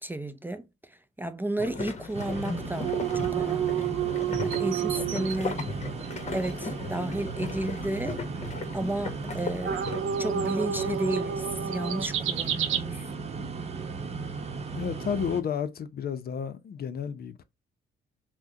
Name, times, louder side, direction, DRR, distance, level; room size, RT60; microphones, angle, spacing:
voice 1, 0.0-3.9 4.4-5.6 6.3-8.4 8.7-9.9 10.2-13.1, right 1 dB, 10° right, 0.4 m, -33 dB
sound 1, 1.6-10.0, left 4 dB, 35° left, 1.1 m, -37 dB
sound 2, 2.1-15.4, right 4 dB, 30° right, 0.9 m, -36 dB
sound 3, 2.8-5.7 6.0-6.1 6.4-6.5 9.6-12.8, right 9 dB, 80° right, 0.8 m, -29 dB
voice 2, 14.7-17.4, left 7 dB, 50° left, 0.6 m, -32 dB
5.9 x 2.2 x 2.7 m
cardioid pair, 90°, 20 cm